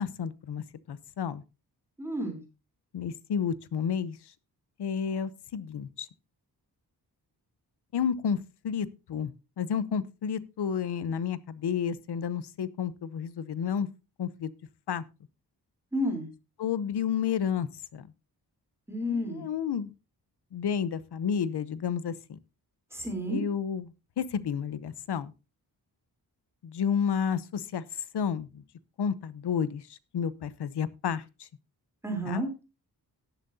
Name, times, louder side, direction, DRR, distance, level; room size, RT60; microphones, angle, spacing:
voice 1, 0.0-1.4 2.9-4.2 4.8-6.1 7.9-8.4 8.6-13.9 14.2-14.5 14.9-15.0 16.6-18.0 19.1-19.9 20.5-22.4 23.3-23.9 24.2-25.3 26.6-27.8 28.1-28.6 29.0-29.8 30.1-31.2 32.3-32.4, left 7 dB, 80° left, 16 dB, 0.8 m, -31 dB
voice 2, 2.0-2.4 15.9-16.3 18.9-19.4 22.9-23.4 32.0-32.5, equal, 5° right, 3 dB, 3.5 m, -31 dB
18.0 x 7.5 x 2.7 m, 0.29 s
wide cardioid pair, 130°, 39 cm